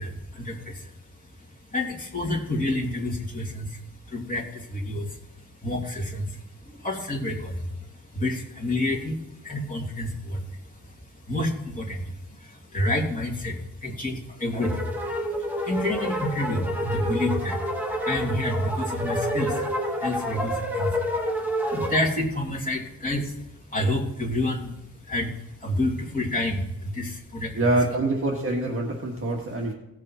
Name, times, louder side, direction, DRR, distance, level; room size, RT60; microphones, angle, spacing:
voice 1, 0.0-27.6, left 1 dB, 25° left, -2 dB, 2.5 m, -29 dB
sound 1, 14.6-22.0, equal, 5° right, 1.4 m, -29 dB
voice 2, 27.5-29.7, right 2 dB, 35° right, -1 dB, 1.7 m, -25 dB
17.0 x 6.5 x 4.3 m, 0.92 s
wide cardioid pair, 140°, 36 cm